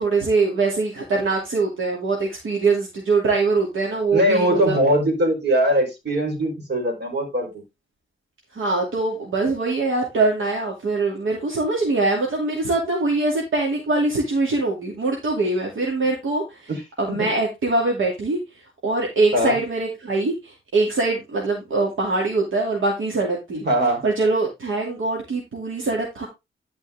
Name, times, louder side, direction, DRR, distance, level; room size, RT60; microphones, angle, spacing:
voice 1, 0.0-4.8 8.5-16.7 17.0-18.4 18.8-23.6 24.0-26.3, right 3 dB, 75° right, -1 dB, 2.6 m, -23 dB
voice 2, 4.1-7.5 16.7-16.8 17.1-17.2 19.3-19.6 23.6-24.0, right 1 dB, 55° right, 3 dB, 4.3 m, -21 dB
11.5 x 5.1 x 3.6 m, 0.23 s
wide cardioid pair, 100°, 21 cm